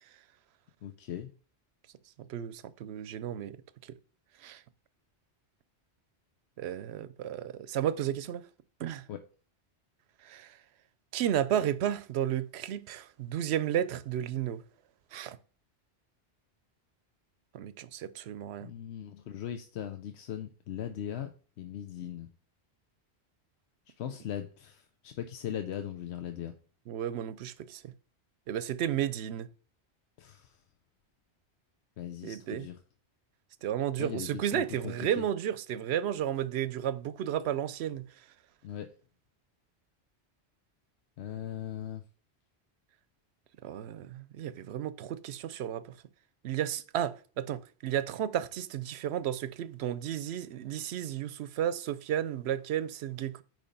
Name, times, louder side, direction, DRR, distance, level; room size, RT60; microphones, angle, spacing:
voice 1, 0.8-1.3 9.1-9.2 18.6-22.3 24.0-26.5 30.2-30.5 32.0-32.8 34.0-35.2 38.6-38.9 41.2-42.0, left 10 dB, 80° left, 0.9 m, -39 dB
voice 2, 2.3-3.6 4.4-4.6 6.6-8.4 8.8-9.0 10.2-10.5 11.1-14.6 15.1-15.4 17.5-18.7 26.9-27.9 28.5-29.5 32.2-32.7 33.6-38.1 43.6-45.8 46.4-53.4, right 10 dB, 75° right, 0.8 m, -33 dB
8.7 x 3.2 x 5.2 m
omnidirectional pair, 1.1 m